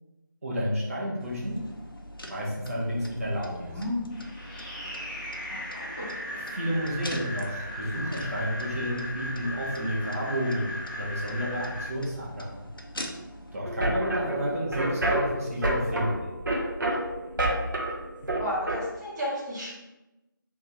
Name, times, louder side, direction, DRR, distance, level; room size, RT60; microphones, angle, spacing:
voice 1, 0.4-1.6 2.3-3.8 6.2-12.7 13.5-16.3, equal, 40° right, -5 dB, 1.3 m, -31 dB
sound 1, 1.2-13.6, left 1 dB, 80° left, 0.9 m, -43 dB
voice 2, 3.5-4.0 5.5-6.1 18.4-19.8, equal, 5° right, -17 dB, 1.2 m, -33 dB
sound 2, 4.1-11.8, left 1 dB, 20° left, 1.1 m, -37 dB
sound 3, 13.6-18.8, right 1 dB, 65° right, 1.1 m, -29 dB
4.5 x 3.5 x 3.4 m, 0.99 s
figure-of-eight pair, 165°, 12 cm